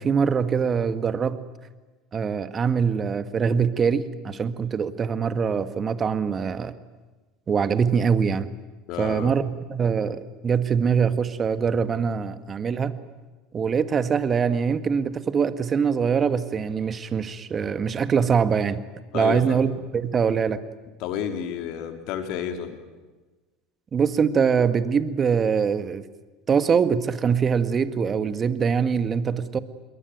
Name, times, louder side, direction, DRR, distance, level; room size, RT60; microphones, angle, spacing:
voice 1, 0.0-1.4 2.1-6.7 7.5-8.5 9.0-13.0 13.5-18.8 19.1-20.6 23.9-26.1 26.5-29.6, right 6 dB, 35° right, 12 dB, 1.9 m, -23 dB
voice 2, 8.9-9.3 19.1-19.6 21.0-22.8, left 9 dB, 60° left, 7 dB, 3.7 m, -30 dB
27.5 x 22.0 x 9.4 m, 1.2 s
hypercardioid pair, 75°, 0 cm